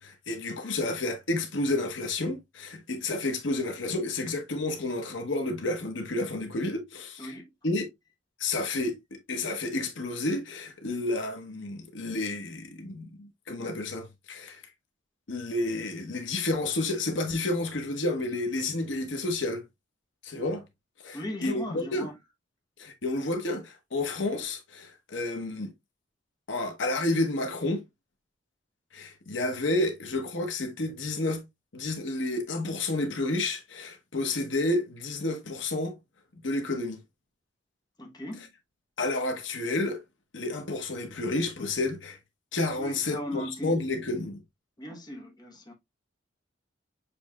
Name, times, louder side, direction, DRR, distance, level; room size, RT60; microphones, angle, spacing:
voice 1, 0.0-7.4 7.6-7.9 8.4-14.6 15.3-19.6 20.2-20.6 21.0-22.1 22.8-25.7 26.5-27.8 28.9-31.4 31.7-36.0 36.4-37.0 39.0-40.0 40.3-42.2 42.5-44.4, left 2 dB, 70° left, 1.0 m, -30 dB
voice 2, 7.2-7.5 21.1-22.2 38.0-38.5 42.8-43.7 44.8-45.7, left 1 dB, 20° left, 1.1 m, -38 dB
6.8 x 3.3 x 2.3 m
head